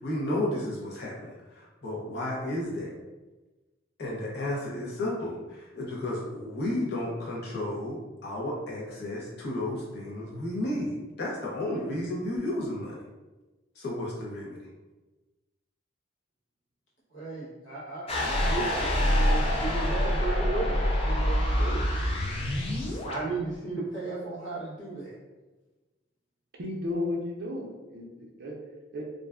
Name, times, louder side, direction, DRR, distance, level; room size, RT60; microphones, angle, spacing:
voice 1, 0.0-2.9 4.0-13.0 13.8-14.6, left 1 dB, 55° left, -4 dB, 0.7 m, -32 dB
voice 2, 17.1-21.8 23.1-25.2, right 3 dB, 75° left, -6 dB, 1.0 m, -35 dB
sound 1, 18.1-23.2, equal, 30° left, 0.3 m, -26 dB
voice 3, 26.6-28.5 28.9-29.0, left 2 dB, 55° right, -1 dB, 0.5 m, -33 dB
2.4 x 2.2 x 2.3 m, 1.1 s
head